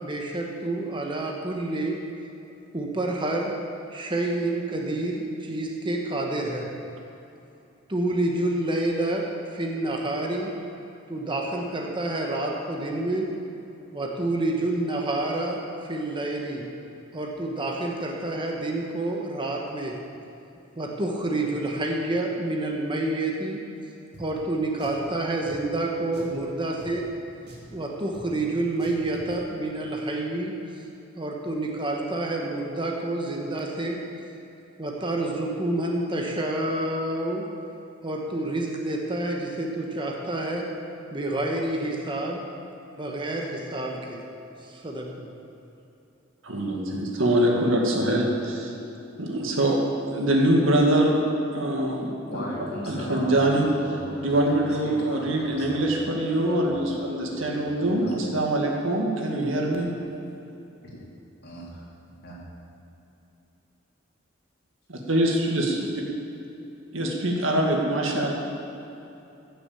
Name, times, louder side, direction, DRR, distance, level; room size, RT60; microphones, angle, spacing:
voice 1, 0.0-2.0 2.7-3.5 3.9-6.7 7.9-10.5 11.1-13.3 13.9-16.6 17.1-19.9 20.8-23.6 24.2-27.1 27.7-30.5 31.1-34.0 34.8-37.4 38.0-40.7 41.1-42.4 43.0-44.2 44.6-45.4, right 2 dB, 25° right, 0 dB, 1.1 m, -28 dB
Drum, 24.1-24.3 24.8-25.1 25.5-25.6 26.1-26.4 26.8-26.9 27.5-27.7 28.1-28.3 28.8-29.3, right 1 dB, 55° right, 2.5 m, -45 dB
voice 2, 46.4-48.7 49.2-49.8 50.1-51.2 51.5-52.1 52.9-53.6 54.2-59.9 64.9-65.9 66.9-68.3, right 1 dB, 70° right, 0 dB, 2.0 m, -23 dB
voice 3, 52.3-55.9 56.5-58.2 60.8-61.0 61.4-61.8 62.2-62.4, left 1 dB, 50° left, -5 dB, 3.3 m, -38 dB
15.0 x 6.9 x 7.1 m, 2.9 s
head